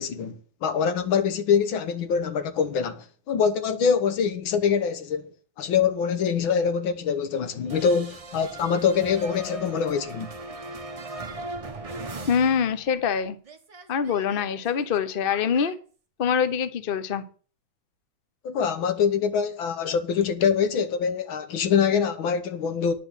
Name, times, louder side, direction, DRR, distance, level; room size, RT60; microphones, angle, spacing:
voice 1, 0.0-5.2 5.6-10.3 18.4-22.9, left 6 dB, 75° left, 1.9 m, -24 dB
sound 1, 7.7-13.2 13.4-15.7, right 2 dB, 40° right, 0.4 m, -39 dB
voice 2, 12.3-13.4 13.9-15.8 16.2-17.2, left 7 dB, 50° left, 0.6 m, -24 dB
10.0 x 5.2 x 8.1 m
omnidirectional pair, 2.2 m